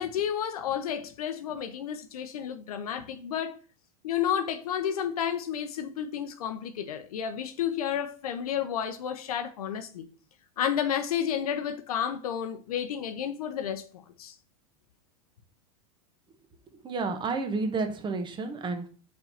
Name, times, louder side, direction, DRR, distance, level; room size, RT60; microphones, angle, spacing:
voice 1, 0.0-3.6 4.0-10.1 10.6-13.8 14.2-14.3, left 9 dB, 80° left, 0.8 m, -31 dB
voice 2, 16.8-18.9, right 3 dB, 25° right, 1.4 m, -30 dB
5.0 x 4.7 x 5.6 m
hypercardioid pair, 105°, 19 cm